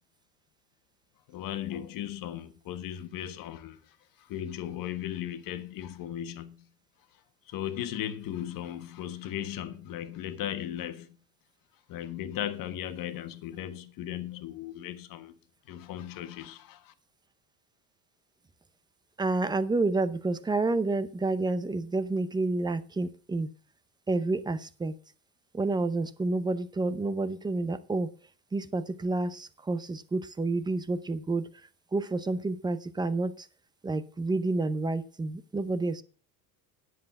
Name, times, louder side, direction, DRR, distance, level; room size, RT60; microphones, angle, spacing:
voice 1, 1.3-3.8 4.3-6.6 7.5-11.1 11.9-15.4 15.7-16.9, left 11 dB, 50° left, 1.4 m, -37 dB
voice 2, 19.2-23.5 24.1-24.9 25.5-28.1 28.5-31.5 31.9-33.3 33.8-36.0, right 3 dB, 10° right, 0.6 m, -29 dB
10.0 x 7.7 x 5.9 m
supercardioid pair, 135°, 44 cm